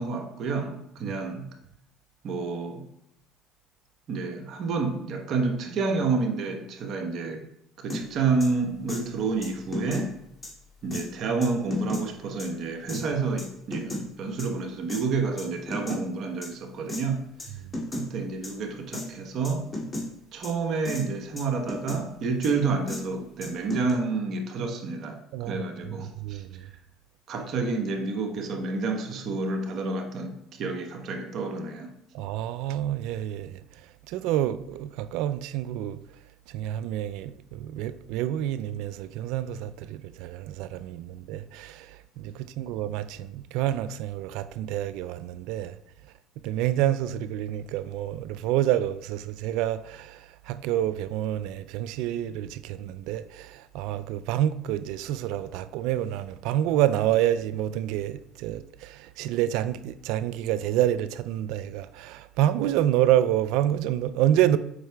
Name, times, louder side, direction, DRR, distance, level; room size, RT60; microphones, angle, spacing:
voice 1, 0.0-1.5 2.2-2.9 4.1-7.4 7.8-10.2 10.8-17.3 17.9-19.7 20.3-26.7 27.3-31.9, right 4 dB, 55° right, 1.0 m, -29 dB
sound 1, 7.9-8.0 8.4-8.5 8.9-9.0 9.4-10.1 10.4-10.5 10.9-11.0 11.4-12.0 12.4-12.5 12.9-13.0 13.4-14.0 14.4-14.5 14.9-15.0 15.4-16.0 16.4-16.5 16.9-17.0 17.4-17.5 17.7-18.0 18.4-18.5 18.9-19.0 19.4-20.0 20.4-20.5 20.8-21.0 21.4-22.0 22.4-22.5 22.9-23.0 23.4-23.9, left 1 dB, 25° left, 2.3 m, -33 dB
voice 2, 25.3-26.6 32.1-33.6 34.1-36.0 36.5-45.8 46.0-46.1 46.4-64.6, right 12 dB, 75° right, 0.3 m, -28 dB
7.7 x 5.6 x 2.2 m
supercardioid pair, 80°, 0 cm